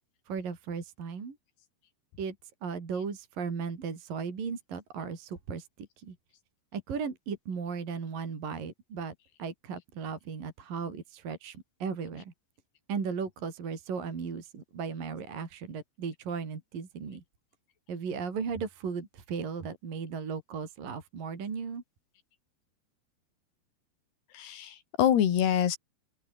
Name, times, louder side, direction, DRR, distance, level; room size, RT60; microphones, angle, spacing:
voice 1, 0.3-1.4 2.2-2.4 2.6-6.2 6.7-9.1 9.4-12.3 12.9-17.2 17.9-21.8, right 6 dB, 50° right, 5.7 m, -36 dB
voice 2, 24.3-25.8, left 10 dB, 60° left, 4.3 m, -25 dB
open air
omnidirectional pair, 5.4 m